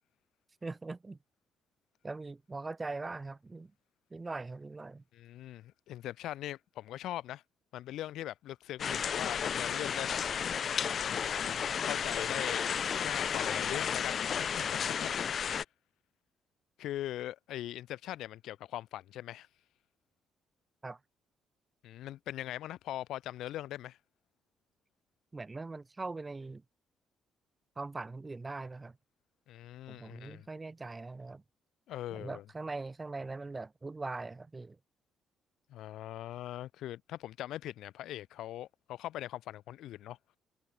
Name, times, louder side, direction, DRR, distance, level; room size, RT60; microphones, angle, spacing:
voice 1, 0.6-1.2 2.0-3.7 4.1-5.0 20.8-21.0 25.3-26.6 27.8-29.0 29.9-31.4 32.1-34.8, right 3 dB, 25° right, 4.5 m, -41 dB
voice 2, 5.1-7.4 7.7-10.2 11.0-12.6 13.0-15.1 15.4-15.6 16.8-19.5 21.8-24.0 29.5-30.5 31.9-32.4 35.7-40.2, left 13 dB, 85° left, 2.1 m, -41 dB
sound 1, 8.8-15.6, left 7 dB, 55° left, 1.0 m, -33 dB
cardioid pair, 90°, 0 cm